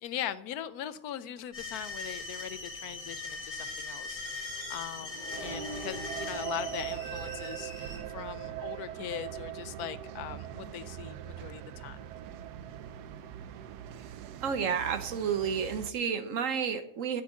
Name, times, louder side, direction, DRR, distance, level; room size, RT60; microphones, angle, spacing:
voice 1, 0.0-12.1, left 11 dB, 75° left, 14 dB, 1.1 m, -40 dB
sound 1, 1.5-8.0, left 3 dB, 20° left, 4.0 m, -40 dB
Accelerating revving vroom, 3.7-10.4, left 1 dB, 30° right, 1.5 m, -49 dB
sound 2, 5.3-15.9, right 11 dB, 85° right, 1.2 m, -41 dB
voice 2, 14.4-17.2, right 7 dB, 60° right, 10 dB, 1.1 m, -31 dB
8.3 x 6.5 x 8.2 m, 0.71 s
omnidirectional pair, 1.7 m